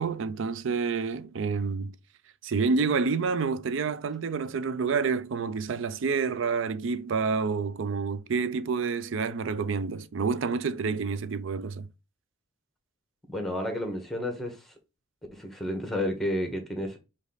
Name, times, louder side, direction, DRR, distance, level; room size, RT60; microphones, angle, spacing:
voice 1, 0.0-1.9 2.4-11.9, right 5 dB, 65° right, 0.4 m, -28 dB
voice 2, 13.3-14.6 15.3-17.0, left 1 dB, ahead, 1.2 m, -31 dB
5.0 x 2.6 x 3.9 m
head